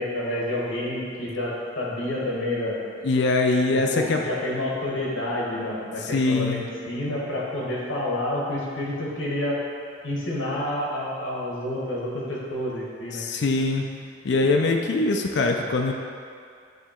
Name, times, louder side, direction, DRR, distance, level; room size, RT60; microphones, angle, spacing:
voice 1, 0.0-2.8 3.7-9.6 10.0-13.2, left 1 dB, 80° left, -5 dB, 1.4 m, -29 dB
voice 2, 3.0-4.2 6.0-6.7 13.1-13.8 14.2-15.9, left 3 dB, 60° left, 2 dB, 0.4 m, -22 dB
8.2 x 2.9 x 4.3 m, 2.3 s
head